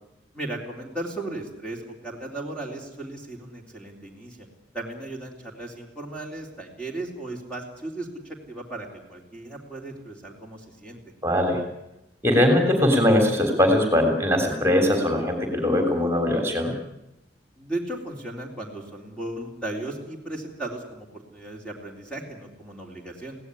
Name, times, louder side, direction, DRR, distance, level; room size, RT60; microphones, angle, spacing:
voice 1, 0.3-4.5 4.7-11.0 17.6-23.4, right 2 dB, 5° left, 0 dB, 3.5 m, -36 dB
voice 2, 11.2-11.6 12.2-16.7, left 1 dB, 15° right, 4 dB, 3.4 m, -21 dB
23.5 x 17.5 x 9.8 m, 0.91 s
head